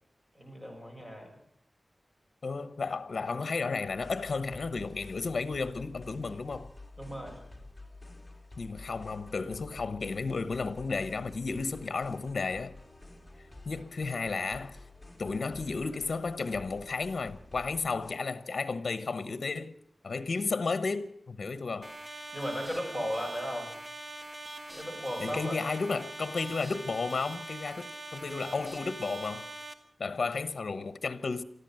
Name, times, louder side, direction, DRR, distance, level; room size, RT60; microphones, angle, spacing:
voice 1, 0.3-1.3 7.0-7.4 22.3-23.7 24.7-25.7, equal, 10° right, 6.7 m, -36 dB
voice 2, 2.4-6.7 8.6-12.7 13.7-14.8 15.2-19.7 20.0-21.9 25.2-29.5 30.0-31.4, left 4 dB, 70° left, 1.0 m, -33 dB
sound 1, 3.9-18.2, left 2 dB, 10° left, 3.6 m, -50 dB
sound 2, 21.8-29.7, right 2 dB, 35° right, 2.5 m, -43 dB
25.0 x 14.0 x 7.6 m
wide cardioid pair, 85°, 0 cm